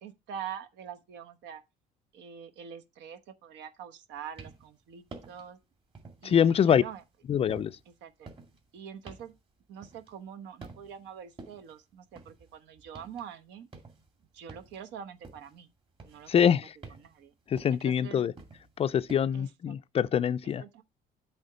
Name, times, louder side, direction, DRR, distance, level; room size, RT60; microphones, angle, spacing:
voice 1, 0.0-1.6 2.1-5.6 6.2-7.0 8.0-8.3 8.7-9.3 9.7-13.7 14.3-15.7 16.0-16.5 17.0-17.3 17.7-18.3 19.3-19.8 20.6-20.8, right 8 dB, 75° right, 1.1 m, -44 dB
sound 1, 4.2-4.8 5.1-5.5 5.9-6.3 6.7-10.3 10.6-11.1 11.4-13.3 13.6-15.6 15.9-19.2, right 3 dB, 30° right, 2.3 m, -50 dB
voice 2, 6.2-6.8 7.3-7.8 16.3-16.6 17.5-18.3 18.8-20.6, left 8 dB, 35° left, 0.4 m, -24 dB
8.0 x 3.5 x 6.6 m
cardioid pair, 125°, 18 cm